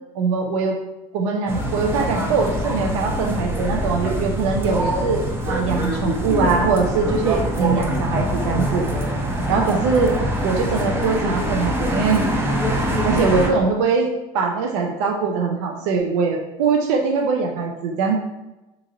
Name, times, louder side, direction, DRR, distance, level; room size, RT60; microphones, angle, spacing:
voice 1, 0.1-0.8 1.1-8.8 9.5-10.2 10.4-12.2 13.0-18.2, right 4 dB, 90° right, 2 dB, 0.5 m, -22 dB
sound 1, 1.5-13.5, equal, 15° right, 0.6 m, -24 dB
3.0 x 2.5 x 3.8 m, 1.0 s
supercardioid pair, 110°, 15 cm